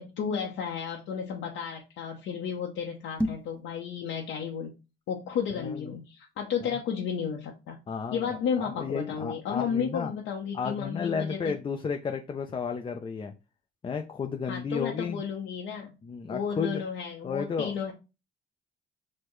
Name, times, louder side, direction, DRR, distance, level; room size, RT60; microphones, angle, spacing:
voice 1, 0.0-4.7 5.1-7.8 8.1-11.5 14.5-15.9 16.3-17.9, left 7 dB, 85° left, -1 dB, 0.7 m, -33 dB
sound 1, 3.1-3.6, equal, 5° left, 0.8 m, -30 dB
voice 2, 5.6-6.0 6.6-6.7 7.9-10.1 10.5-13.3 13.8-15.2 16.0-16.8 17.2-17.8, left 5 dB, 25° left, 5 dB, 0.5 m, -33 dB
6.5 x 2.2 x 3.0 m, 0.29 s
cardioid pair, 90°, 20 cm